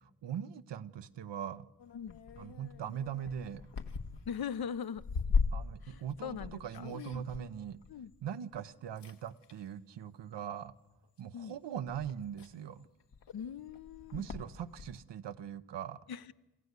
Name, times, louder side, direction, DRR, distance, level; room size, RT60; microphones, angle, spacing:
voice 1, 0.2-1.7 2.4-3.6 5.5-7.8 8.2-10.7 11.2-12.9 14.1-16.0, right 9 dB, 80° right, 0.9 m, -41 dB
sound 1, 1.8-8.6 9.0-9.7 10.6-10.9 11.5-11.6 11.8-15.0, left 5 dB, 75° left, 1.5 m, -38 dB
voice 2, 4.3-5.0 5.8-7.2 7.9-8.1 11.3-11.6 13.3-14.3 16.1-16.3, left 7 dB, 60° left, 0.7 m, -41 dB
28.0 x 14.5 x 8.1 m
cardioid pair, 60°, 42 cm